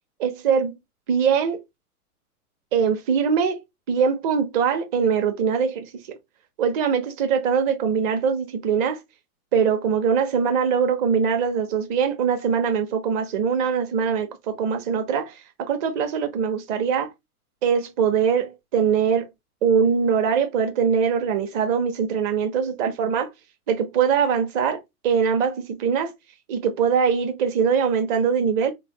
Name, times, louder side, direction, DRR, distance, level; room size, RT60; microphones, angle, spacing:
voice 1, 0.2-0.8 1.1-1.6 2.7-3.6 3.9-6.2 6.6-9.0 9.5-17.1 17.6-19.3 19.6-23.3 23.7-26.1 26.5-28.7, right 6 dB, 35° right, 0.9 m, -22 dB
3.3 x 2.2 x 4.0 m
hypercardioid pair, 135°, 45 cm